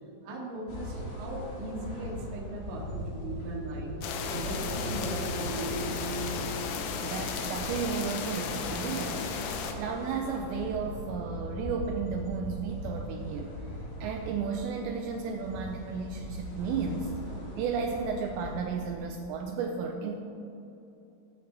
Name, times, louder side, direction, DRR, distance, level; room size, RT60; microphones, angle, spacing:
voice 1, 0.2-3.9 4.3-5.9, right 1 dB, 65° right, -4 dB, 3.8 m, -38 dB
sound 1, 0.7-19.0, left 1 dB, 60° left, 3.9 m, -40 dB
sound 2, 3.4-8.9, right 2 dB, 30° right, 2.3 m, -41 dB
sound 3, 4.0-9.7, left 6 dB, 75° left, 2.8 m, -35 dB
voice 2, 7.0-13.5 14.0-17.1 17.6-20.2, right 5 dB, 85° right, 3 dB, 2.6 m, -33 dB
21.0 x 8.8 x 2.9 m, 2.9 s
omnidirectional pair, 5.7 m